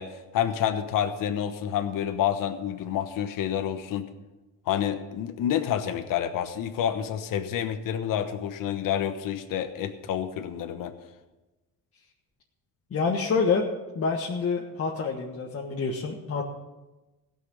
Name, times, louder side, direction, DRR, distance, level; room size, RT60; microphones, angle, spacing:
voice 1, 0.0-4.1 4.7-10.9, left 9 dB, 65° left, 8 dB, 1.2 m, -28 dB
voice 2, 12.9-13.7 13.9-16.4, left 4 dB, 40° left, -1 dB, 1.6 m, -27 dB
16.5 x 6.1 x 8.7 m, 1.1 s
cardioid pair, 115°, 35 cm